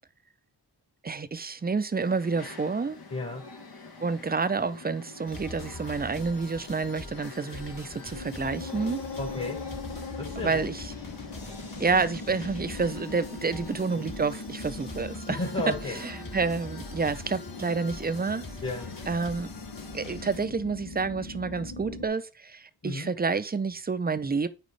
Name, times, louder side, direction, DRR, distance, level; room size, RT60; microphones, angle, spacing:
voice 1, 1.0-3.0 4.0-9.0 10.4-10.8 11.8-15.4 16.3-18.4 19.1-19.5 19.9-24.5, right 4 dB, 25° right, 0.5 m, -29 dB
sound 1, 2.0-20.3, left 4 dB, 70° left, 1.4 m, -48 dB
voice 2, 3.1-3.5 9.2-9.6 10.2-10.7 15.3-16.0 18.6-18.9 22.8-23.1, left 2 dB, 35° left, 1.7 m, -33 dB
sound 2, 5.3-20.5, left 2 dB, 55° left, 2.2 m, -43 dB
sound 3, 8.1-22.1, left 3 dB, 90° left, 1.3 m, -41 dB
9.2 x 4.7 x 3.3 m
wide cardioid pair, 80°, 39 cm